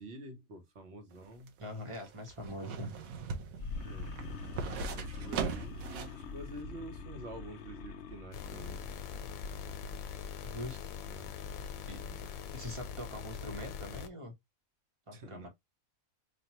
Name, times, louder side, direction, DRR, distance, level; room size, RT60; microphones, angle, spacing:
voice 1, 0.0-1.5 3.8-4.2 4.9-8.8 11.1-11.3 12.0-12.2 15.1-15.5, right 1 dB, 50° right, 1.2 m, -48 dB
sound 1, 1.1-6.2 6.6-6.7, right 5 dB, 80° right, 1.2 m, -40 dB
voice 2, 1.6-2.9 10.4-10.9 11.9-12.0 12.5-14.3 15.1-15.5, equal, 25° right, 1.0 m, -43 dB
sound 2, 3.6-9.9, left 3 dB, 60° left, 0.8 m, -44 dB
sound 3, 8.3-14.1, left 7 dB, 90° left, 1.1 m, -42 dB
5.1 x 2.3 x 2.9 m
omnidirectional pair, 1.4 m